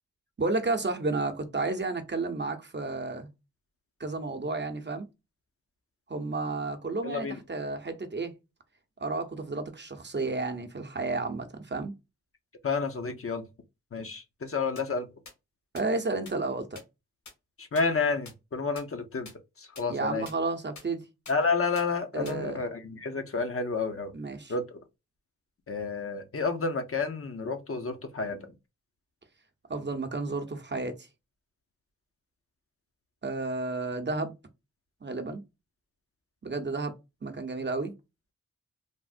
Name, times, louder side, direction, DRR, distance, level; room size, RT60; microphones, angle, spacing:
voice 1, 0.4-3.3 4.0-5.1 6.1-8.3 9.0-11.9 15.7-16.8 19.9-21.0 22.1-22.7 24.1-24.5 29.7-31.1 33.2-34.3 35.0-35.4 36.4-36.9 37.2-37.9, right 3 dB, 35° right, 0.8 m, -32 dB
voice 2, 7.0-7.3 12.6-13.4 13.9-15.1 17.6-19.3 19.6-20.3 21.3-24.1 24.5-24.6 25.7-28.5, left 4 dB, 45° left, 0.7 m, -30 dB
sound 1, 14.8-14.9 15.3-15.4 15.8-15.9 16.3-16.4 16.8-16.9 17.3-17.4 17.8-17.9 18.3-18.4 18.8-18.9 19.3-19.4 19.8-19.9 20.3-20.4 20.8-20.9 21.3-21.4 21.8-21.9 22.3-22.4, left 3 dB, 65° left, 1.3 m, -45 dB
3.4 x 2.0 x 2.5 m
cardioid pair, 45°, 31 cm